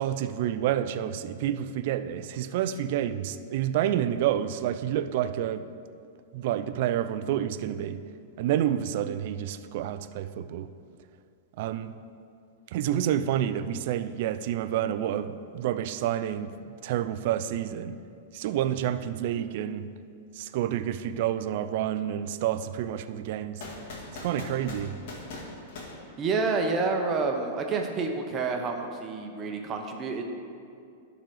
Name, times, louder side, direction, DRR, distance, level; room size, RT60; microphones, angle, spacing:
voice 1, 0.0-5.7 6.3-8.0 8.4-10.7 11.6-12.0 12.7-16.5 16.8-18.0 18.3-19.9 20.3-23.6 24.2-25.0, right 11 dB, 60° right, 12 dB, 0.4 m, -29 dB
sound 1, 23.6-26.8, left 2 dB, 65° left, 1.8 m, -41 dB
voice 2, 26.2-30.3, right 4 dB, 30° right, 3 dB, 0.9 m, -28 dB
11.5 x 4.0 x 4.8 m, 2.4 s
hypercardioid pair, 110°, 0 cm